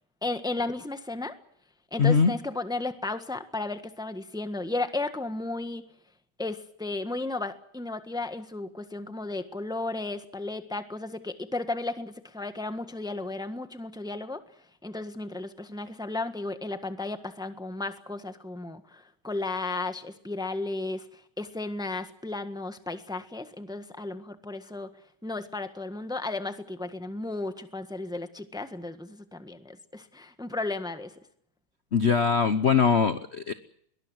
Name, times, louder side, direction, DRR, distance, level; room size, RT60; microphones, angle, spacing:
voice 1, 0.2-1.3 1.9-5.8 6.4-14.4 14.8-24.9 25.2-31.1, left 2 dB, ahead, 9 dB, 1.2 m, -34 dB
voice 2, 2.0-2.3 31.9-33.5, left 6 dB, 45° left, 11 dB, 0.9 m, -22 dB
22.5 x 19.5 x 7.9 m, 0.66 s
omnidirectional pair, 2.3 m